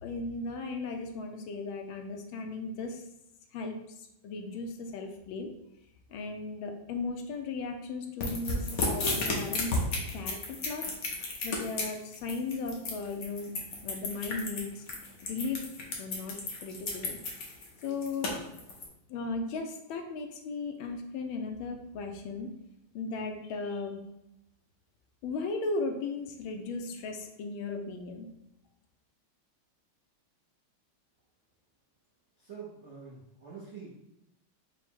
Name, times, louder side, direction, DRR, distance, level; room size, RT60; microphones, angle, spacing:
voice 1, 0.0-3.0 3.5-5.5 6.1-9.8 10.1-10.9 11.4-13.5 13.8-14.8 15.2-15.7 16.0-17.2 17.8-18.3 19.1-22.5 22.9-24.0 25.2-28.3, left 3 dB, 80° left, 4 dB, 1.4 m, -36 dB
sound 1, 8.2-18.8, left 2 dB, 60° left, 1.0 m, -33 dB
voice 2, 32.4-33.9, right 5 dB, 65° right, -6 dB, 0.6 m, -46 dB
4.7 x 2.1 x 4.4 m, 0.85 s
omnidirectional pair, 2.3 m